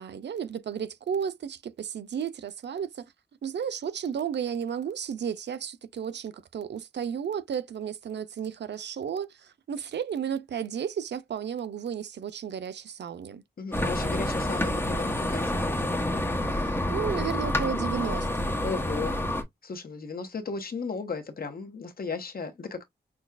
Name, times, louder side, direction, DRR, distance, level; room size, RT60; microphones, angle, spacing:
voice 1, 0.0-3.1 3.4-13.4 16.5-18.5, right 8 dB, 90° right, 0.5 m, -33 dB
voice 2, 13.6-16.0 18.6-19.2 19.6-22.8, left 4 dB, 60° left, 1.0 m, -35 dB
sound 1, 13.7-19.4, left 1 dB, 15° left, 1.0 m, -28 dB
6.1 x 2.3 x 2.4 m
wide cardioid pair, 95°, 17 cm